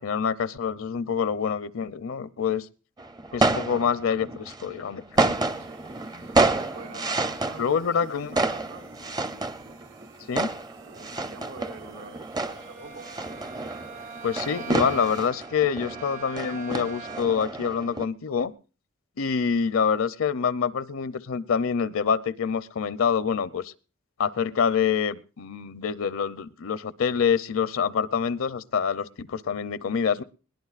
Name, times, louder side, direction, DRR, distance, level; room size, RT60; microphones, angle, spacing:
voice 1, 0.0-2.7 3.3-5.3 7.6-8.4 10.3-10.5 14.2-18.5 19.2-23.7 24.2-30.2, left 6 dB, 70° left, 15 dB, 0.6 m, -26 dB
sound 1, 3.0-18.0, right 2 dB, 20° right, 0.6 m, -29 dB
sound 2, 5.1-15.3, right 4 dB, 65° right, 1.3 m, -53 dB
voice 2, 6.1-8.1 8.3-8.8 10.8-13.1, right 3 dB, 80° right, 1 dB, 4.8 m, -45 dB
Bowed string instrument, 12.5-17.5, right 5 dB, 40° right, 0.9 m, -42 dB
21.0 x 18.0 x 2.4 m, 0.36 s
head